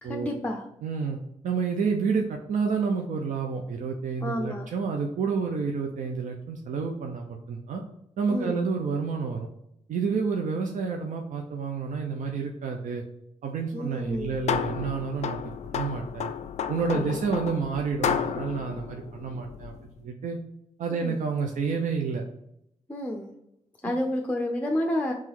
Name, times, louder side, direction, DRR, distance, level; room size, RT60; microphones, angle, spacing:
voice 1, 0.0-0.7 4.2-4.7 8.3-8.6 13.7-14.4 16.9-17.2 20.9-21.2 22.9-23.3 23.8-25.1, left 1 dB, 10° left, 1 dB, 0.6 m, -30 dB
voice 2, 0.8-7.8 8.2-9.5 9.9-13.0 13.4-16.3 16.7-19.7 20.0-20.4 20.8-22.2, right 5 dB, 75° right, 2 dB, 0.6 m, -29 dB
sound 1, 14.0-19.9, left 8 dB, 60° left, 0.4 m, -32 dB
3.7 x 3.1 x 4.5 m, 0.78 s
cardioid pair, 70°, 13 cm